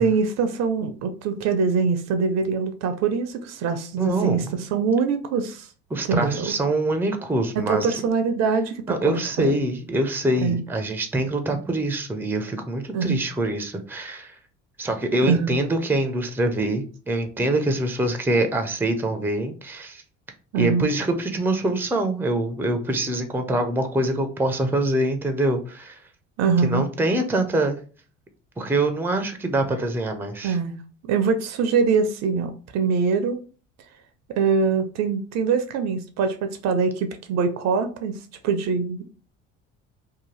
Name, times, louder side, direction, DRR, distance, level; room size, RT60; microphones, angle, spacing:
voice 1, 0.0-5.7 6.1-6.4 7.6-9.6 10.4-10.6 12.9-13.2 15.3-15.6 20.5-20.9 26.4-26.9 30.4-30.8 31.0-33.4 34.3-38.2 38.4-39.1, right 5 dB, 50° right, 0.5 m, -23 dB
voice 2, 4.0-4.5 5.9-8.0 8.9-14.3 14.8-20.0 20.5-26.0 26.6-27.8 28.6-30.6, right 1 dB, 5° right, 0.5 m, -24 dB
2.7 x 2.2 x 3.1 m
hypercardioid pair, 65°, 35 cm